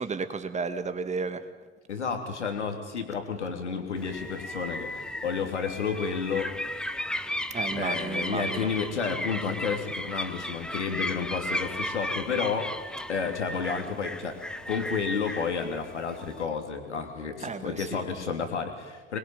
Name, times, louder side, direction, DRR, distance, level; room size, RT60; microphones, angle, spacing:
voice 1, 0.0-1.4 7.5-8.7 17.4-18.0, right 4 dB, 20° right, 10 dB, 2.1 m, -33 dB
voice 2, 1.9-6.5 7.8-12.8 13.1-14.4 14.6-19.2, left 6 dB, 75° left, 5 dB, 3.2 m, -31 dB
sound 1, 4.0-16.4, left 1 dB, ahead, 1.2 m, -35 dB
27.0 x 22.0 x 9.0 m, 1.4 s
figure-of-eight pair, 75°, 35 cm